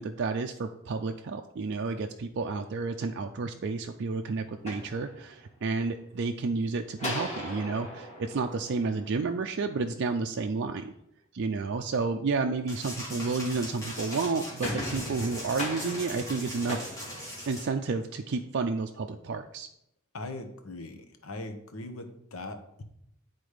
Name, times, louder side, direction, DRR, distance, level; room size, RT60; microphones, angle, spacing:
voice 1, 0.0-10.9 11.3-16.9 17.5-19.7, right 4 dB, 55° right, 4 dB, 0.4 m, -31 dB
sound 1, 4.5-5.7 7.0-9.5 13.9-17.9, left 1 dB, 30° left, 2.2 m, -39 dB
sound 2, 12.7-17.7, left 1 dB, 15° left, 2.3 m, -40 dB
voice 2, 20.1-22.8, left 2 dB, 75° left, 6 dB, 1.0 m, -40 dB
9.6 x 4.0 x 5.0 m, 0.76 s
head